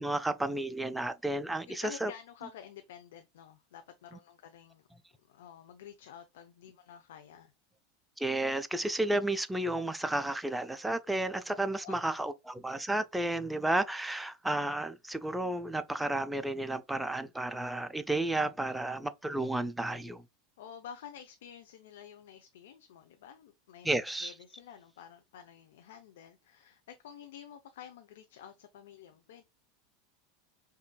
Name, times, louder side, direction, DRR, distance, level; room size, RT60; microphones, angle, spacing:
voice 1, 0.0-2.1 8.2-20.2 23.8-24.3, right 1 dB, 5° right, 0.4 m, -32 dB
voice 2, 1.7-4.9 5.3-7.5 11.8-12.3 20.6-29.4, left 9 dB, 75° left, 0.5 m, -50 dB
5.4 x 2.5 x 2.2 m
hypercardioid pair, 95°, 0 cm